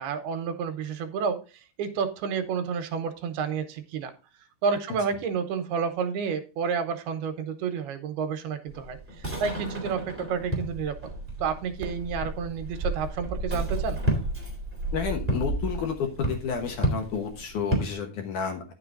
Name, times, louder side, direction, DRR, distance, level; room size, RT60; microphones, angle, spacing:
voice 1, 0.0-4.1 4.6-11.0 11.4-14.0, right 6 dB, 80° right, 8 dB, 2.9 m, -30 dB
sound 1, 8.7-17.9, right 1 dB, 5° right, 3.1 m, -31 dB
voice 2, 14.9-18.6, left 6 dB, 65° left, 4 dB, 2.3 m, -30 dB
10.5 x 6.6 x 3.9 m, 0.32 s
omnidirectional pair, 4.6 m